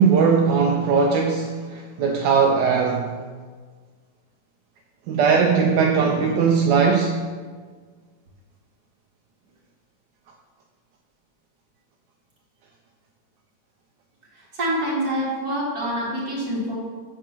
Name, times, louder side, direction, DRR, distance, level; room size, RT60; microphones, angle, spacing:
voice 1, 0.0-3.1 5.1-7.2, right 5 dB, 85° right, 2 dB, 1.3 m, -19 dB
voice 2, 14.3-16.7, right 1 dB, 60° right, -6 dB, 2.7 m, -26 dB
6.7 x 4.5 x 5.9 m, 1.5 s
omnidirectional pair, 1.8 m